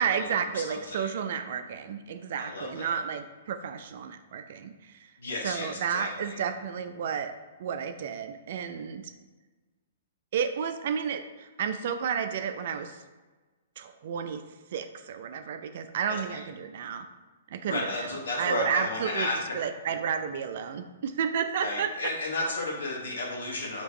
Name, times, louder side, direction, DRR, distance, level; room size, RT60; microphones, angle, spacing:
voice 1, 0.0-5.1 5.4-7.3 7.6-9.1 10.3-13.0 13.8-14.4 14.7-17.1 17.5-18.1 18.4-21.9, right 7 dB, 55° right, 8 dB, 0.4 m, -31 dB
voice 2, 0.7-1.1 2.4-3.0 5.2-6.4 16.1-16.4 17.6-19.4 19.9-20.0 21.6-23.8, left 2 dB, 70° left, -2 dB, 1.2 m, -33 dB
3.5 x 2.8 x 4.3 m, 1.3 s
figure-of-eight pair, 115°, 0 cm